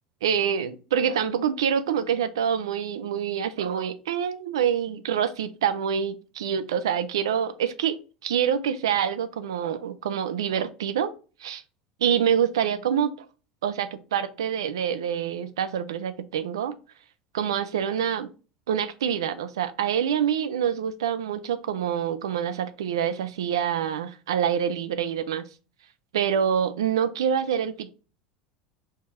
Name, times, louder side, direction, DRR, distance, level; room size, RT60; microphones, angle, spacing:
voice 1, 0.2-8.0 8.2-11.1 11.4-11.6 12.0-13.3 13.6-16.7 17.3-18.3 18.7-25.5 26.1-27.9, right 8 dB, 85° right, 12 dB, 0.5 m, -26 dB
4.7 x 2.3 x 4.2 m, 0.35 s
hypercardioid pair, 90°, 3 cm